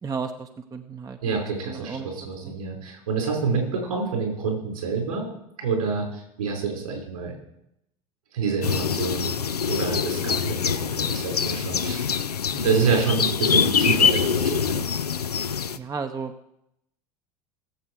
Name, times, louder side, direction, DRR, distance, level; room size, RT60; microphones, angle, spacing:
voice 1, 0.0-1.4 1.7-2.1 2.4-2.5 12.5-12.7 15.7-16.3, right 5 dB, 20° right, 6 dB, 0.8 m, -34 dB
voice 2, 1.2-5.3 5.6-7.4 8.3-12.1 12.6-14.8, right 5 dB, 70° right, 0 dB, 5.1 m, -27 dB
sound 1, 8.6-15.8, left 7 dB, 85° left, 0.5 m, -24 dB
18.5 x 7.8 x 4.7 m, 0.80 s
figure-of-eight pair, 75°, 20 cm